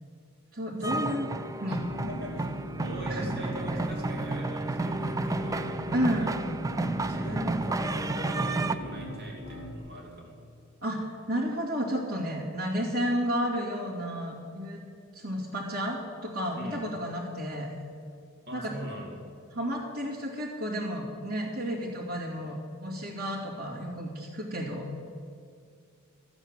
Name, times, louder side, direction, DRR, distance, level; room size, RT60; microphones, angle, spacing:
voice 1, 0.5-1.3 1.6-1.9 3.1-3.3 5.9-6.3 10.8-14.8 15.1-17.7 18.5-18.7 19.5-24.9, equal, 85° right, -6 dB, 2.4 m, -32 dB
sound 1, 0.8-8.8, right 2 dB, 15° right, 0.4 m, -31 dB
voice 2, 1.7-2.5 2.8-6.3 7.1-10.4 16.6-16.8 18.5-19.2, equal, 50° right, -1 dB, 2.7 m, -40 dB
sound 2, 1.8-9.8, equal, 55° left, 2.4 m, -40 dB
13.5 x 8.2 x 7.6 m, 2.4 s
head